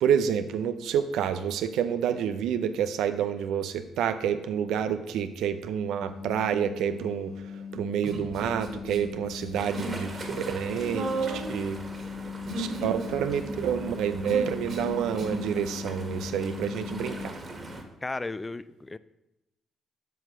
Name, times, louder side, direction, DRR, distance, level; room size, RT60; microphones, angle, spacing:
voice 1, 0.0-11.8 12.6-17.4, right 8 dB, 85° right, 10 dB, 0.5 m, -29 dB
sound 1, 6.0-17.3, left 6 dB, 90° left, 2.4 m, -39 dB
Human voice, 8.0-9.0 9.3-10.0 10.3-15.5, right 3 dB, 60° right, 2.2 m, -35 dB
sound 2, 9.5-17.8, right 2 dB, 30° right, 1.7 m, -42 dB
voice 2, 18.0-19.0, left 3 dB, 20° left, 16 dB, 0.4 m, -34 dB
7.9 x 4.8 x 7.2 m, 0.91 s
cardioid pair, 90°, 0 cm